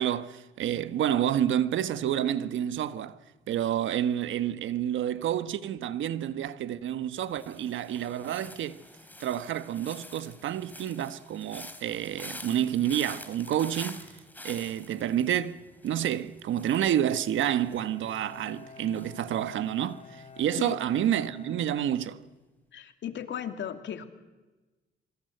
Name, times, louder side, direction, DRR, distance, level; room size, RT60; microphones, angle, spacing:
voice 1, 0.0-3.2 3.5-8.8 9.2-14.0 14.4-15.6 15.8-22.2, right 10 dB, 75° right, 1.3 m, -29 dB
sound 1, 7.3-20.3 20.6-21.0, left 1 dB, 10° left, 3.1 m, -48 dB
Bowed string instrument, 17.7-22.6, left 5 dB, 35° left, 2.5 m, -50 dB
voice 2, 22.7-24.0, left 9 dB, 70° left, 2.7 m, -36 dB
26.5 x 24.0 x 8.0 m
cardioid pair, 90°, 20 cm